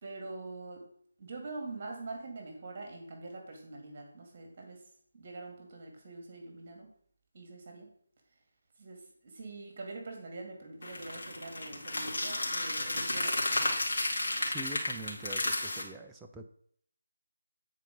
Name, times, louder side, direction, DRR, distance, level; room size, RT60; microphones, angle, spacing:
voice 1, 0.0-0.9 1.2-4.8 5.1-6.9 7.3-7.9 8.8-13.8, right 3 dB, 40° right, 2 dB, 2.2 m, -44 dB
sound 1, 10.8-15.8, left 2 dB, 50° left, 2.2 m, -32 dB
voice 2, 14.5-16.5, right 2 dB, 5° right, 1 dB, 0.4 m, -44 dB
9.1 x 4.6 x 5.2 m, 0.63 s
figure-of-eight pair, 155°, 0 cm